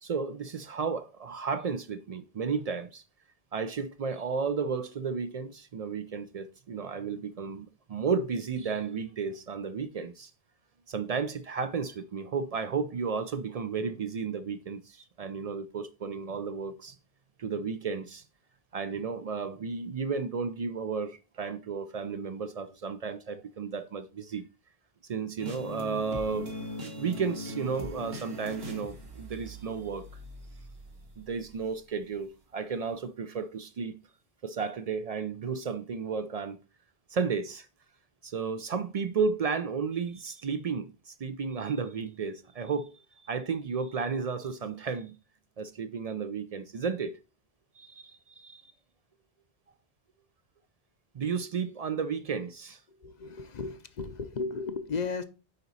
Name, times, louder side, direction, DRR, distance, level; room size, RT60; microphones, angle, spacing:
voice 1, 0.0-3.0 3.5-10.3 10.9-17.0 17.4-18.2 18.7-24.4 25.0-26.5 26.8-30.1 31.2-33.9 34.4-36.6 37.1-37.7 38.2-42.9 43.2-45.1 45.6-47.2 47.8-48.7 51.1-52.8, right 5 dB, 55° right, 0.4 m, -33 dB
sound 1, 25.4-32.2, left 1 dB, 70° right, 1.6 m, -41 dB
voice 2, 52.9-55.2, left 4 dB, 50° left, 0.7 m, -35 dB
9.3 x 4.0 x 4.0 m
omnidirectional pair, 1.1 m